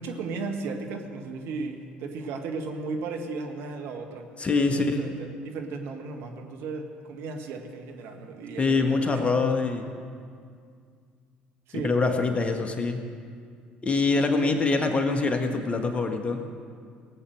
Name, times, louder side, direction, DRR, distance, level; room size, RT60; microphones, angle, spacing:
voice 1, 0.0-4.3 4.6-9.1 11.7-12.0 14.4-14.5, right 4 dB, 60° right, 3 dB, 1.6 m, -35 dB
voice 2, 4.4-5.0 8.6-9.9 11.8-13.0 13.8-16.4, left 3 dB, 25° left, 5 dB, 1.6 m, -24 dB
18.5 x 8.4 x 6.5 m, 2.2 s
hypercardioid pair, 60°, 5 cm